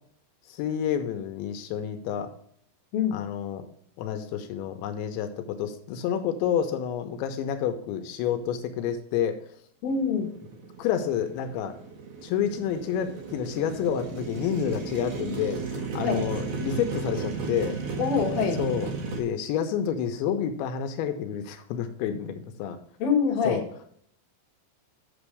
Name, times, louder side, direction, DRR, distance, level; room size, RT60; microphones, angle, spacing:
voice 1, 0.5-2.3 3.1-3.7 4.0-9.5 10.8-11.8 12.2-17.8 18.6-22.8 23.4-23.6, left 8 dB, 85° left, 7 dB, 2.9 m, -29 dB
voice 2, 9.8-10.3 16.0-16.2 18.0-18.6 23.0-23.6, left 6 dB, 65° left, 1 dB, 2.6 m, -25 dB
Motorcycle, 9.9-19.2, right 5 dB, 70° right, 1.5 m, -34 dB
8.3 x 7.1 x 3.3 m, 0.65 s
omnidirectional pair, 5.4 m